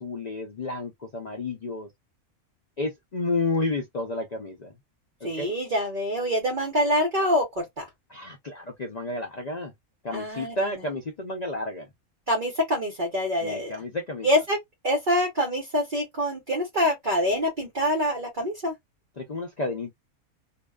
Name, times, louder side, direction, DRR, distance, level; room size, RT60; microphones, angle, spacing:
voice 1, 0.0-1.9 2.8-4.7 5.2-5.5 8.1-9.7 10.0-11.9 13.4-14.3 19.2-19.9, left 2 dB, 70° left, 0.4 m, -31 dB
voice 2, 5.2-7.8 10.1-10.6 12.3-13.7 14.2-14.6 14.8-18.7, equal, 40° right, 0.9 m, -25 dB
2.6 x 2.3 x 2.2 m
omnidirectional pair, 1.5 m